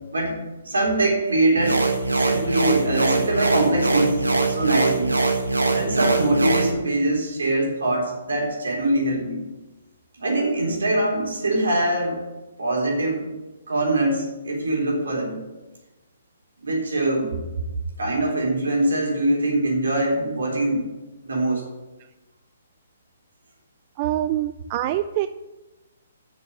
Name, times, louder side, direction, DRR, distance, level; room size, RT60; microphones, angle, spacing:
voice 1, 0.6-1.8 2.2-5.1 5.7-9.4 10.2-12.2 12.6-13.3 13.7-15.4 16.6-17.3 18.0-20.8 21.2-21.6, right 1 dB, 70° right, -1 dB, 3.6 m, -23 dB
sound 1, 1.6-6.7, right 3 dB, 85° right, 1.4 m, -22 dB
voice 2, 24.0-25.3, right 13 dB, 35° right, 11 dB, 0.3 m, -25 dB
7.0 x 6.8 x 7.7 m, 1.1 s
figure-of-eight pair, 130°, 0 cm